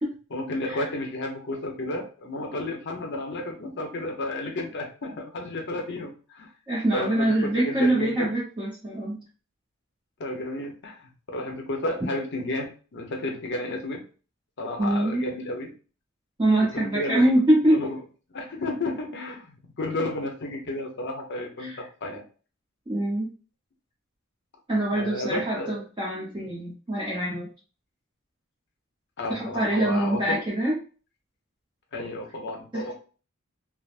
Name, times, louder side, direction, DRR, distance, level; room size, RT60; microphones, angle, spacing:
voice 1, 0.3-6.5 6.9-8.3 10.2-14.0 14.6-15.7 16.6-17.4 17.7-18.0 18.3-22.2 24.9-25.8 29.2-30.4 31.9-32.9, left 1 dB, 55° left, 2 dB, 0.7 m, -32 dB
voice 2, 6.7-9.2 14.8-15.2 16.4-17.8 21.6-21.8 22.9-23.3 24.7-27.5 29.3-30.8 32.7-32.9, right 1 dB, 20° right, -5 dB, 0.7 m, -24 dB
3.3 x 2.0 x 2.4 m, 0.37 s
head